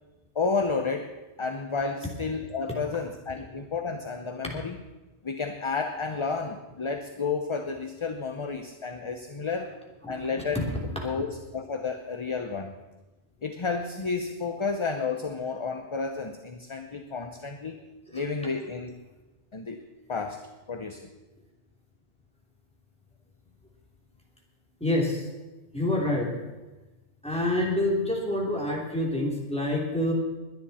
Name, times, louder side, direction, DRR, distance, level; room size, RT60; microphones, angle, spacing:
voice 1, 0.3-4.8 5.2-9.7 10.1-10.6 11.0-12.8 13.4-17.8 18.1-19.0 19.5-19.8 20.1-21.0, left 4 dB, 30° left, 6 dB, 0.7 m, -31 dB
voice 2, 24.8-25.3 25.7-26.3 27.2-30.1, left 1 dB, 5° left, -2 dB, 3.1 m, -27 dB
21.0 x 10.5 x 4.2 m, 1.1 s
omnidirectional pair, 1.1 m